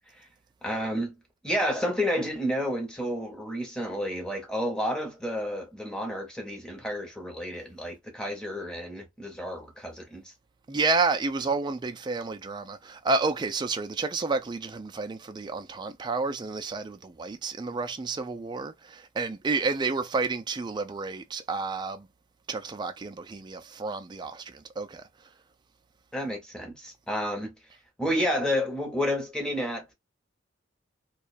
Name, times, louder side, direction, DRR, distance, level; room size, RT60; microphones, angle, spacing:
voice 1, 0.6-1.1 1.4-10.2 26.1-27.5 28.0-29.9, equal, 5° left, 0.8 m, -30 dB
voice 2, 10.7-22.1 22.5-25.0, right 3 dB, 20° right, 0.3 m, -30 dB
2.3 x 2.2 x 2.4 m
head